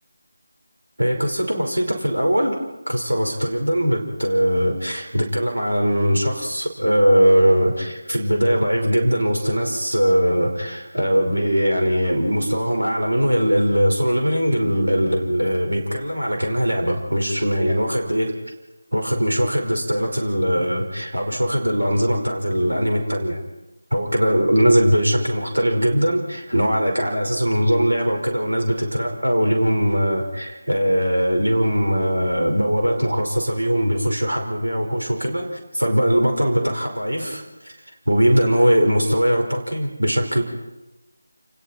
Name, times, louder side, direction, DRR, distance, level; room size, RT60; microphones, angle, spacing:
voice 1, 1.0-2.6 2.9-18.4 18.9-23.4 23.9-37.7 38.1-40.4, equal, 80° right, 3 dB, 5.3 m, -20 dB
30.0 x 20.5 x 4.6 m, 1.0 s
figure-of-eight pair, 165°, 0 cm